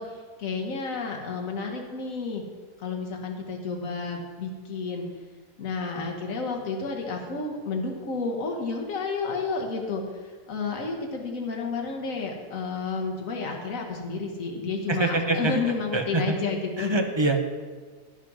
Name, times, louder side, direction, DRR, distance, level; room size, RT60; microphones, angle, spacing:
voice 1, 0.0-2.4 2.8-5.1 5.6-17.0, left 4 dB, 75° left, 1 dB, 1.7 m, -31 dB
voice 2, 14.9-15.5 15.9-16.4 16.8-17.4, right 2 dB, 25° right, 4 dB, 0.8 m, -24 dB
11.0 x 6.7 x 6.1 m, 1.5 s
omnidirectional pair, 1.4 m